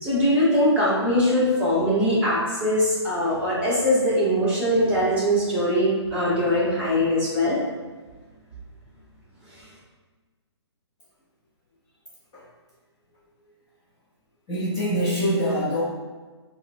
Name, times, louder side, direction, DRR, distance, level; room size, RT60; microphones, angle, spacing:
voice 1, 0.0-7.6, equal, 10° right, -10 dB, 0.8 m, -21 dB
voice 2, 14.5-15.8, equal, 20° left, -10 dB, 0.4 m, -24 dB
3.7 x 2.1 x 2.5 m, 1.3 s
hypercardioid pair, 160°, 15 cm